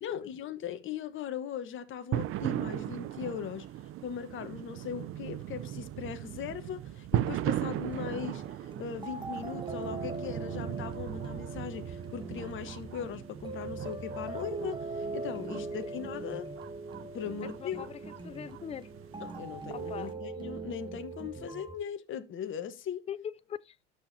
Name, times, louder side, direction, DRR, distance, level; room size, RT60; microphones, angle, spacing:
voice 1, 0.0-3.7 4.0-16.5 17.1-17.9 19.2-23.1, left 8 dB, 40° left, 1.3 m, -39 dB
sound 1, 2.1-20.1, right 13 dB, 45° right, 0.6 m, -38 dB
sound 2, 7.8-21.8, right 3 dB, 15° right, 1.4 m, -41 dB
voice 2, 17.4-18.9 19.7-20.2 23.1-23.8, left 9 dB, 20° left, 0.4 m, -41 dB
11.0 x 6.9 x 2.7 m
hypercardioid pair, 85°, 30 cm